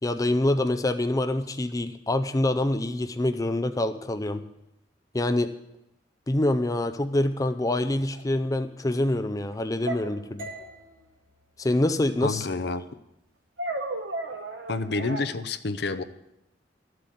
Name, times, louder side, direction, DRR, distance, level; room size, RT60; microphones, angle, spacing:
voice 1, 0.0-4.5 5.1-5.5 6.3-10.5 11.6-12.5, left 1 dB, 20° left, 8 dB, 0.5 m, -25 dB
sound 1, 8.1-8.2 9.9-10.8 13.6-15.3, right 2 dB, 80° right, 1.4 m, -34 dB
sound 2, 10.4-14.5, equal, 55° right, 2.0 m, -49 dB
voice 2, 12.2-12.9 14.7-16.0, left 3 dB, 65° left, 11 dB, 0.7 m, -29 dB
13.0 x 7.7 x 7.6 m, 0.88 s
head